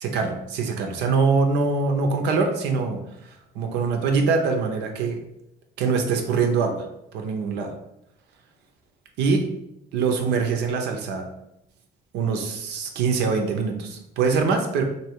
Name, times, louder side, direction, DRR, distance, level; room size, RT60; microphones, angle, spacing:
voice 1, 0.0-5.2 5.8-6.8 7.1-7.7 9.2-9.5 9.9-11.3 12.1-14.8, right 4 dB, 85° right, 3 dB, 0.8 m, -23 dB
3.3 x 2.9 x 4.6 m, 0.82 s
cardioid pair, 110°, 17 cm